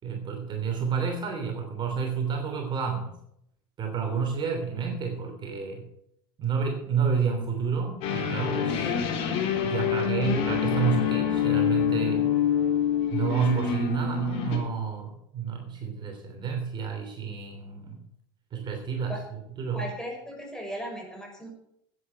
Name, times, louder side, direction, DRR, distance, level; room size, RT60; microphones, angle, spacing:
voice 1, 0.0-3.1 3.8-5.8 6.4-8.9 9.6-12.3 13.1-18.0 18.5-19.2 19.6-19.8, right 6 dB, 40° right, 3 dB, 3.2 m, -30 dB
sound 1, 8.0-14.6, left 8 dB, 60° left, 4.1 m, -26 dB
voice 2, 19.7-21.5, equal, 5° left, 0 dB, 5.9 m, -37 dB
11.0 x 9.4 x 7.9 m, 0.76 s
hypercardioid pair, 90°, 12 cm